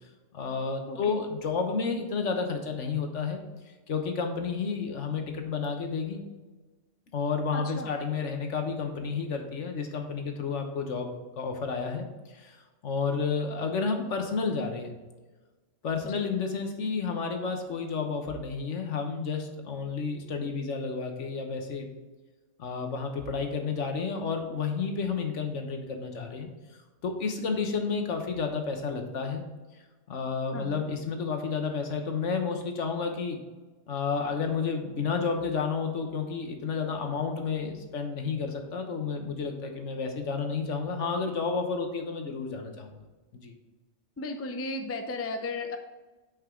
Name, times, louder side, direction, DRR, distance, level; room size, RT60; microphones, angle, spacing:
voice 1, 0.3-3.4 3.9-6.2 7.1-15.0 15.8-21.9 22.6-26.5 27.0-29.4 30.1-33.4 33.9-42.9 43.4-43.5, left 5 dB, 70° left, 4 dB, 1.4 m, -31 dB
voice 2, 7.5-7.9 16.0-16.3 30.5-30.8 44.2-45.8, left 2 dB, 20° left, 5 dB, 0.4 m, -35 dB
9.0 x 5.3 x 3.7 m, 1.2 s
omnidirectional pair, 1.3 m